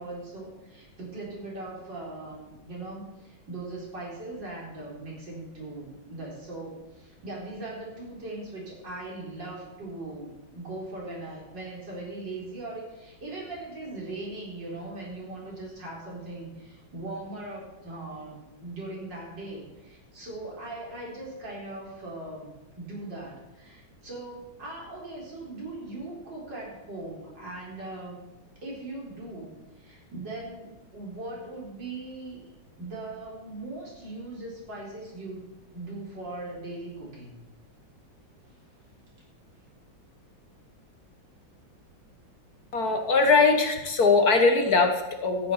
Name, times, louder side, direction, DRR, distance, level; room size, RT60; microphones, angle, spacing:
voice 1, 0.0-22.5 22.8-28.2 28.6-32.4 32.8-35.5 35.7-37.4, right 2 dB, 65° right, -4 dB, 4.8 m, -39 dB
voice 2, 42.7-45.5, left 4 dB, 55° left, 4 dB, 1.7 m, -21 dB
13.5 x 9.5 x 5.6 m, 1.0 s
omnidirectional pair, 2.1 m